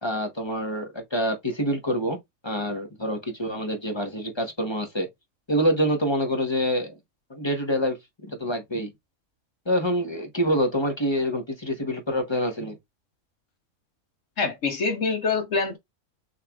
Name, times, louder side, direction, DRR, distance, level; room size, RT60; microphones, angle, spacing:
voice 1, 0.0-2.2 2.4-5.1 5.5-7.0 7.3-8.0 8.3-8.9 9.7-12.8, equal, 20° left, 1.0 m, -26 dB
voice 2, 14.4-15.8, left 4 dB, 60° left, 1.5 m, -25 dB
6.5 x 3.3 x 2.3 m
omnidirectional pair, 1.5 m